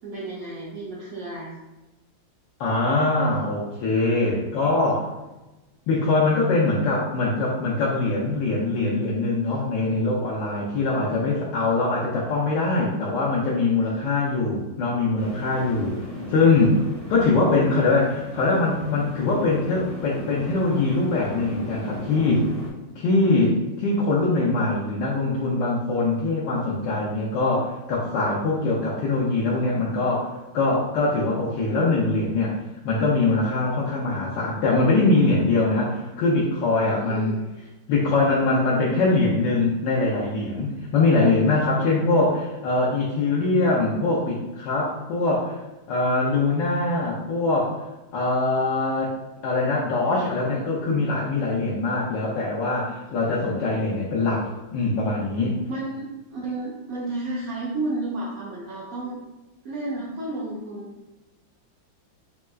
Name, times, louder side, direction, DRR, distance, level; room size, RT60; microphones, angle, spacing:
voice 1, 0.0-1.6 13.8-14.1 37.0-37.4 53.7-53.8 55.7-59.2 59.6-60.9, right 2 dB, 80° right, -5 dB, 0.7 m, -32 dB
voice 2, 2.6-5.1 5.9-16.0 16.3-16.8 17.1-22.5 22.9-32.6 32.8-37.3 37.9-45.6 45.9-47.8 48.1-49.1 49.4-55.6, left 3 dB, 75° left, -5 dB, 1.2 m, -22 dB
sound 1, 15.2-22.7, equal, 30° right, 0.7 m, -37 dB
4.4 x 2.1 x 2.2 m, 1.0 s
omnidirectional pair, 2.1 m